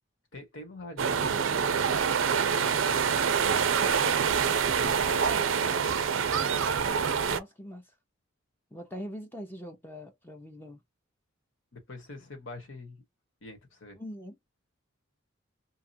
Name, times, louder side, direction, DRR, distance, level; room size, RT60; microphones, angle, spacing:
voice 1, 0.3-3.2 4.5-5.3 11.7-13.0 13.4-14.0, left 2 dB, 70° left, 1.3 m, -45 dB
sound 1, 1.0-7.4, right 6 dB, 70° right, 0.5 m, -26 dB
voice 2, 7.3-7.9 8.7-10.8 13.9-14.4, equal, 10° left, 0.6 m, -42 dB
2.9 x 2.3 x 2.6 m
head